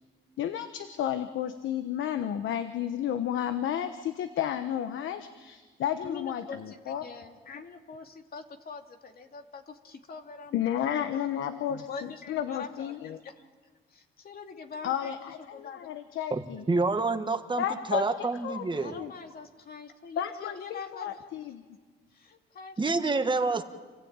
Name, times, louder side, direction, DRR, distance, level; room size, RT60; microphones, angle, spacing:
voice 1, 0.4-7.1 10.5-13.2 14.8-16.6 17.6-18.6 19.0-19.1 20.2-21.6, left 10 dB, 75° left, 9 dB, 1.1 m, -32 dB
voice 2, 6.0-11.3 11.6-16.0 18.7-21.5 22.1-23.6, left 5 dB, 50° left, 4 dB, 2.5 m, -44 dB
voice 3, 16.3-19.0 22.8-23.6, right 3 dB, 25° right, 7 dB, 1.7 m, -28 dB
28.0 x 15.5 x 8.9 m, 1.4 s
cardioid pair, 90°, 20 cm